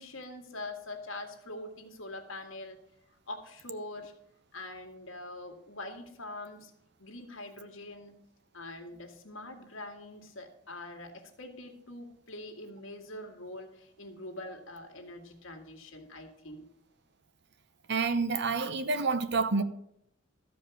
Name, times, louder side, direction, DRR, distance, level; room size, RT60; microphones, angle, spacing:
voice 1, 0.0-2.8 3.3-4.1 4.5-6.7 7.0-8.2 8.5-16.7, left 2 dB, 70° left, 2.0 m, -44 dB
voice 2, 17.9-19.6, right 4 dB, 55° right, 0.8 m, -28 dB
13.5 x 5.1 x 7.0 m
head